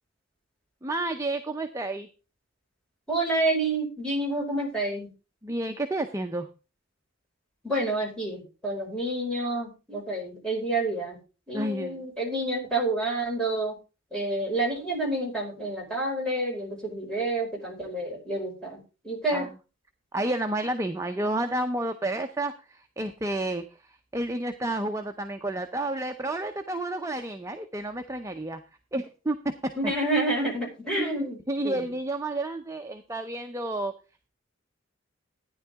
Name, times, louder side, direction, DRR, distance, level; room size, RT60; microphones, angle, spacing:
voice 1, 0.8-2.1 5.4-6.5 11.5-12.0 19.3-19.5 20.1-28.6 28.9-29.4 29.8-29.9 31.0-33.9, right 1 dB, 15° right, 5 dB, 0.6 m, -30 dB
voice 2, 3.1-5.1 7.6-11.2 11.5-13.7 14.1-19.5 29.8-31.4 31.6-31.9, right 2 dB, 5° left, -3 dB, 5.2 m, -29 dB
13.5 x 9.9 x 3.5 m, 0.32 s
head